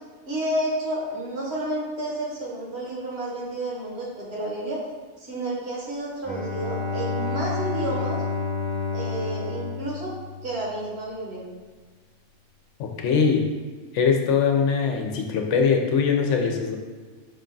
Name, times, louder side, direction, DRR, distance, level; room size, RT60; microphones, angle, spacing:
voice 1, 0.3-4.8 5.2-8.2 8.9-10.1 10.4-11.4, right 1 dB, 60° right, -3 dB, 1.2 m, -30 dB
Bowed string instrument, 6.2-10.9, left 4 dB, 10° left, 0.6 m, -30 dB
voice 2, 12.8-13.5 13.9-16.8, left 6 dB, 80° left, 3 dB, 0.9 m, -22 dB
5.1 x 2.3 x 3.8 m, 1.5 s
omnidirectional pair, 1.2 m